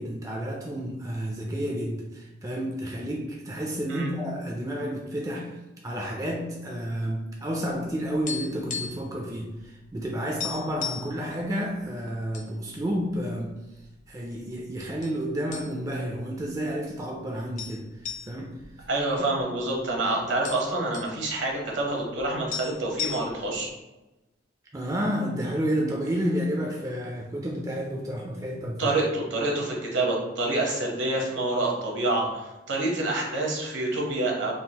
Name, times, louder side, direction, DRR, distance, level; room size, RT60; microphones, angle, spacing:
voice 1, 0.0-5.6 5.8-13.5 14.1-17.8 18.3-18.5 19.2-19.3 24.7-28.9, equal, 20° right, -1 dB, 0.3 m, -30 dB
sound 1, 8.3-9.2 9.4-9.6 10.0-10.1 10.4-11.1 11.8-12.5 12.9-13.0 13.7-14.3 15.0-15.2 15.5-16.0 16.4-16.5 17.6-19.6 19.9-20.0 20.2-21.2 22.2-22.3 22.5-23.6, left 7 dB, 40° left, 0.5 m, -35 dB
voice 2, 18.9-23.7 28.8-34.5, right 2 dB, 70° right, -1 dB, 0.9 m, -27 dB
3.7 x 2.4 x 2.8 m, 1.0 s
head